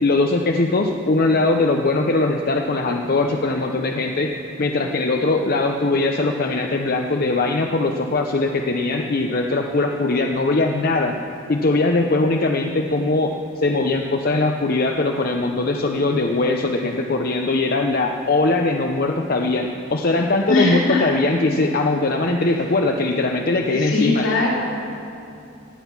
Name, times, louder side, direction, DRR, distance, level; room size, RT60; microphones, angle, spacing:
voice 1, 0.0-4.3 4.6-11.2 11.5-24.2, left 2 dB, 45° left, 3 dB, 0.6 m, -21 dB
voice 2, 20.5-21.1 23.8-24.5, left 3 dB, 80° left, -6 dB, 3.5 m, -20 dB
17.5 x 9.0 x 5.9 m, 2.6 s
head